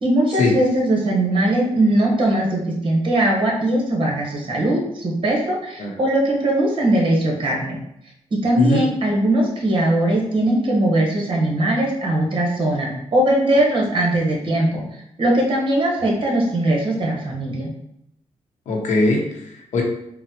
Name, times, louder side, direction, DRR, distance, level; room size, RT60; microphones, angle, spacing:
voice 1, 0.0-7.8 8.4-14.8 15.2-17.7, right 1 dB, 45° right, -1 dB, 1.0 m, -20 dB
voice 2, 18.7-19.8, left 2 dB, 75° left, 0 dB, 0.7 m, -20 dB
4.0 x 2.1 x 2.8 m, 0.78 s
cardioid pair, 100°, 13 cm